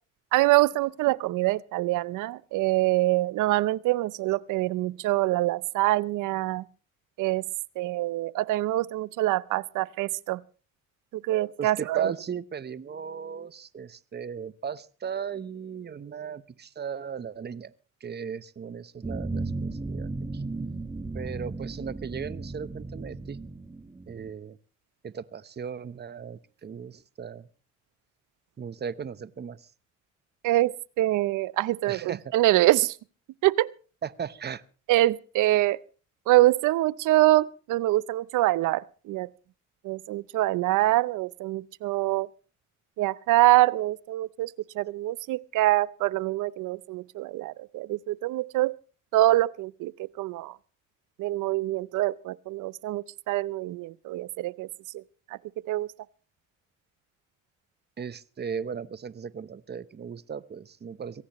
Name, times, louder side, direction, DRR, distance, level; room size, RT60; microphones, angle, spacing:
voice 1, 0.3-6.6 7.2-7.4 7.8-10.4 11.2-12.1 30.4-33.0 33.4-33.7 34.9-35.8 36.3-39.3 39.8-42.3 43.0-48.7 49.1-49.9 50.2-50.5 51.2-54.7 54.9-55.0 55.7-55.9, right 17 dB, 90° right, 0.7 m, -25 dB
voice 2, 11.6-17.7 18.0-20.4 21.1-23.4 24.1-24.6 25.0-27.5 28.6-29.7 31.9-32.2 32.6-32.7 34.0-34.6 58.0-61.2, right 7 dB, 35° right, 0.9 m, -37 dB
sound 1, 19.0-24.3, right 3 dB, 15° right, 1.3 m, -35 dB
23.5 x 17.0 x 3.0 m
cardioid pair, 90°, 30 cm